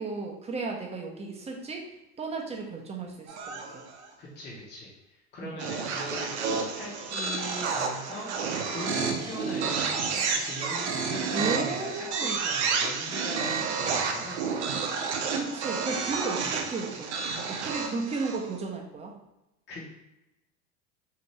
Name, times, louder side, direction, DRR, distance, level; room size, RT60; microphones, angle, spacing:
voice 1, 0.0-1.9 2.2-3.8 5.4-5.6 9.1-9.3 11.0-12.4 15.3-19.1, right 3 dB, 20° right, 1 dB, 0.6 m, -34 dB
sound 1, 3.3-4.1 5.6-18.6, right 5 dB, 90° right, 0.5 m, -30 dB
voice 2, 4.2-8.3 8.7-14.4 19.7-19.8, left 1 dB, 30° left, -6 dB, 0.9 m, -40 dB
2.8 x 2.5 x 3.1 m, 0.92 s
hypercardioid pair, 90°, 33 cm